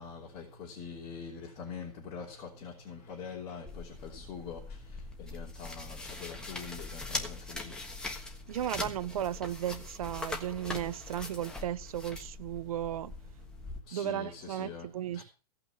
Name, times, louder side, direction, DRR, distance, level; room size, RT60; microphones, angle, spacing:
voice 1, 0.0-4.6 5.2-7.7 13.9-14.9 15.1-15.2, left 5 dB, 25° left, 3.3 m, -44 dB
sound 1, 3.7-13.8, left 2 dB, 5° left, 1.4 m, -41 dB
voice 2, 8.5-13.1 13.9-15.2, right 11 dB, 65° right, 0.9 m, -35 dB
16.5 x 5.9 x 7.3 m
hypercardioid pair, 160°, 20 cm